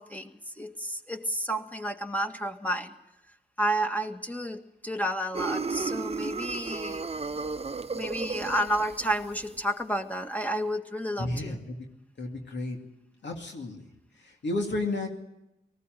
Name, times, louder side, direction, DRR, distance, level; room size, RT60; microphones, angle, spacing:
voice 1, 0.0-2.9 3.6-7.1 7.9-11.6, equal, 10° left, 5 dB, 1.8 m, -31 dB
sound 1, 5.3-9.6, right 4 dB, 35° right, 0.7 m, -34 dB
voice 2, 11.2-11.9 12.2-12.8 13.2-13.9 14.2-15.1, left 2 dB, 85° left, 2 dB, 2.4 m, -32 dB
18.5 x 15.0 x 9.2 m, 0.92 s
cardioid pair, 45°, 18 cm